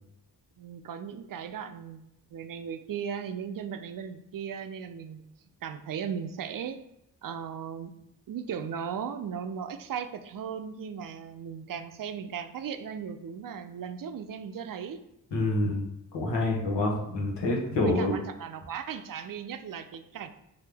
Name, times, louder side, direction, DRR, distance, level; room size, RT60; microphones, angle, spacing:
voice 1, 0.6-5.2 5.6-6.8 7.2-7.9 8.3-15.0 17.8-20.3, right 7 dB, 50° right, 9 dB, 0.5 m, -37 dB
voice 2, 15.3-15.8 16.1-18.2, left 2 dB, 80° left, -1 dB, 1.2 m, -27 dB
3.7 x 3.2 x 3.4 m, 0.81 s
supercardioid pair, 40°, 42 cm